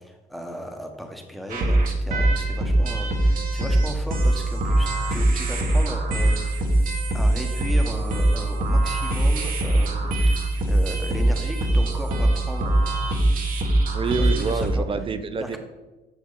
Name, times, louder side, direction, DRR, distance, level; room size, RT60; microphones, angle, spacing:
voice 1, 0.0-6.8 7.1-10.2 10.7-12.8 14.2-14.8 15.4-15.6, left 1 dB, ahead, 3 dB, 1.3 m, -36 dB
sound 1, 1.5-14.7, right 1 dB, 55° right, 1.5 m, -22 dB
voice 2, 13.9-15.6, right 5 dB, 30° right, 10 dB, 0.6 m, -27 dB
8.7 x 6.3 x 4.0 m, 1.1 s
cardioid pair, 110°, 17 cm